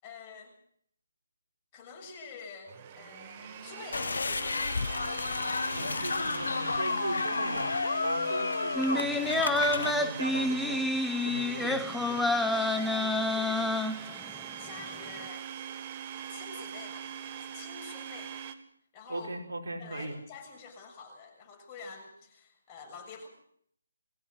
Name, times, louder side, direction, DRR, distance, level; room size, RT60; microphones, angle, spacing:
voice 1, 0.0-0.5 1.7-4.6 11.5-11.7 12.5-13.7 14.6-15.5 16.3-17.1 17.5-18.4 18.9-19.3 19.8-23.3, left 4 dB, 20° left, 2 dB, 7.1 m, -47 dB
Domestic sounds home sounds, 2.7-18.5, right 9 dB, 30° right, 1.9 m, -42 dB
sound 1, 3.9-9.9, left 4 dB, 70° left, 1.0 m, -31 dB
voice 2, 5.7-10.8 11.2-12.2 19.1-20.1, right 2 dB, 70° right, 2 dB, 5.2 m, -38 dB
sound 2, 8.8-14.4 14.8-14.9, left 2 dB, ahead, 1.0 m, -28 dB
22.5 x 15.5 x 8.0 m, 0.66 s
figure-of-eight pair, 155°, 0 cm